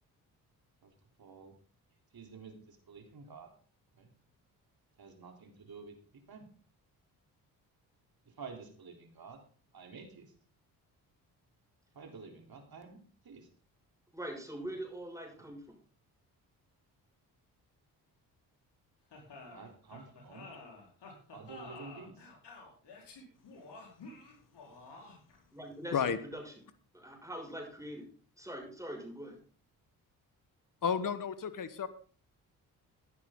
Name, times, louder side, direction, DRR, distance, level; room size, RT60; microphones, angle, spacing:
voice 1, 1.2-1.5 2.1-3.5 4.0-4.1 5.0-5.9 6.3-6.4 8.4-9.4 9.7-10.3 12.0-13.0 13.2-13.5 15.4-15.5 19.4-20.5 21.3-22.1, right 5 dB, 50° right, 3 dB, 3.8 m, -50 dB
voice 2, 14.1-15.8 25.5-26.5 26.9-28.1 28.4-29.4, right 1 dB, 5° right, 0 dB, 6.2 m, -43 dB
sound 1, 19.1-25.4, left 3 dB, 65° left, 4.6 m, -51 dB
voice 3, 30.8-31.9, left 7 dB, 45° left, 13 dB, 1.4 m, -32 dB
15.0 x 10.5 x 3.9 m, 0.42 s
hypercardioid pair, 45°, 45 cm